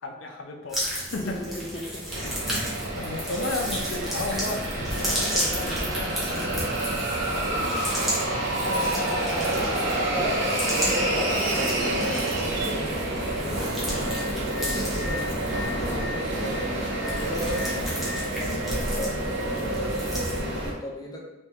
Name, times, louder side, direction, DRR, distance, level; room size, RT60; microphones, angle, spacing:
voice 1, 0.0-1.4 2.2-2.4 3.0-6.8 7.3-7.5 8.6-10.4 15.6-16.0, left 3 dB, 75° left, 3 dB, 0.5 m, -34 dB
sound 1, 0.7-20.4, equal, ahead, 0.8 m, -34 dB
voice 2, 1.2-2.6 7.5-7.7 10.1-15.3 15.8-18.0 18.6-21.3, left 1 dB, 20° left, -1 dB, 0.4 m, -36 dB
sound 2, 2.1-20.7, right 1 dB, 65° right, 0.7 m, -28 dB
sound 3, 3.4-4.8 5.4-5.5 6.6-8.0 8.5-10.2 10.5-10.8 11.8-14.0, right 2 dB, 40° right, 1.2 m, -44 dB
3.5 x 3.0 x 2.7 m, 1.1 s
head